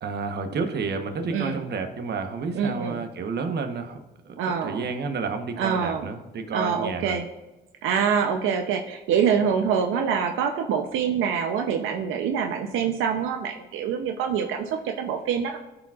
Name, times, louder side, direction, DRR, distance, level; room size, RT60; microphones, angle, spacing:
voice 1, 0.0-7.2, right 4 dB, 55° right, 7 dB, 1.1 m, -30 dB
voice 2, 1.3-1.6 2.5-3.0 4.4-4.8 5.6-6.1 6.5-7.3 7.8-15.6, right 7 dB, 90° right, 4 dB, 0.6 m, -25 dB
13.0 x 4.9 x 2.4 m, 1.1 s
cardioid pair, 90°, 20 cm